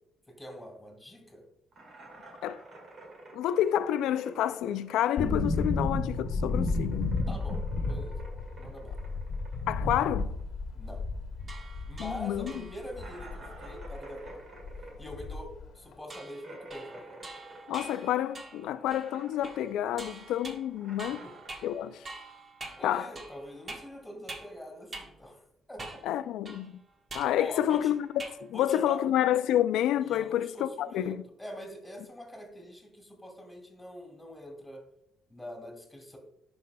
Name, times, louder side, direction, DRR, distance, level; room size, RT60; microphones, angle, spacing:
voice 1, 0.3-1.4 7.3-8.2 8.6-9.0 10.7-11.0 11.8-14.4 15.0-17.3 21.1-21.3 22.8-26.2 27.4-27.9 28.5-29.0 30.1-34.8 35.3-36.2, equal, 5° left, 2.6 m, -44 dB
sound 1, 1.7-6.0 6.3-11.3 11.6-11.7 12.1-12.2 12.9-18.5 18.8-19.7 20.0-21.5, right 1 dB, 55° right, 2.4 m, -50 dB
voice 2, 3.3-7.2 9.7-10.3 12.0-12.5 17.7-21.2 21.6-22.0 22.8-23.1 26.0-26.8 27.1-28.2 28.5-31.2, left 11 dB, 90° left, 0.3 m, -29 dB
sound 2, 5.2-14.0 14.3-14.4 14.6-15.7 15.9-16.0, left 3 dB, 70° left, 1.1 m, -32 dB
sound 3, 11.4-13.0 16.1-24.6 24.9-25.1 25.8-26.1 26.4-28.4 28.7-29.0, right 2 dB, 35° right, 1.3 m, -46 dB
11.0 x 5.3 x 2.3 m
cardioid pair, 90°, 0 cm